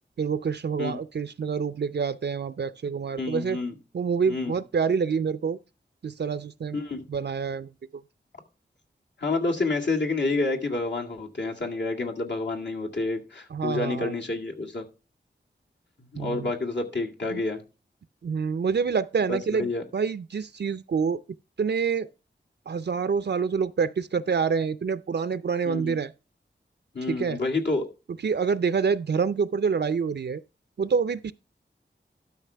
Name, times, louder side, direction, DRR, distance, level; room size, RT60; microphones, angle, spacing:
voice 1, 0.2-3.6 3.9-5.6 6.0-6.8 7.1-7.7 13.5-14.1 16.2-16.5 17.3-17.4 18.2-21.2 21.6-22.1 22.7-26.1 27.1-27.4 28.2-30.4 30.8-31.3, right 6 dB, 65° right, 0.5 m, -27 dB
voice 2, 3.2-3.7 4.3-4.6 6.7-7.0 9.2-14.8 16.1-17.6 19.3-19.8 25.6-26.0 26.9-27.9, left 3 dB, 70° left, 2.0 m, -29 dB
12.5 x 5.9 x 3.4 m
wide cardioid pair, 70°, 19 cm